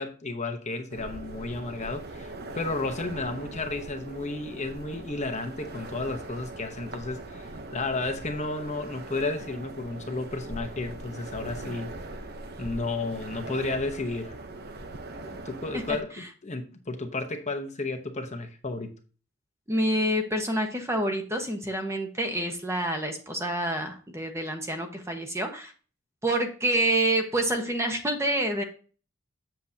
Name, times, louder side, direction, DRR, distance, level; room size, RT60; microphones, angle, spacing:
voice 1, 0.0-11.9 12.6-14.4 15.2-18.9, left 2 dB, 35° left, 5 dB, 0.9 m, -33 dB
sound 1, 0.9-16.0, right 2 dB, 50° right, 0.8 m, -41 dB
voice 2, 19.7-25.7 26.2-28.6, right 1 dB, 15° right, 4 dB, 1.2 m, -27 dB
7.7 x 7.5 x 2.8 m, 0.37 s
head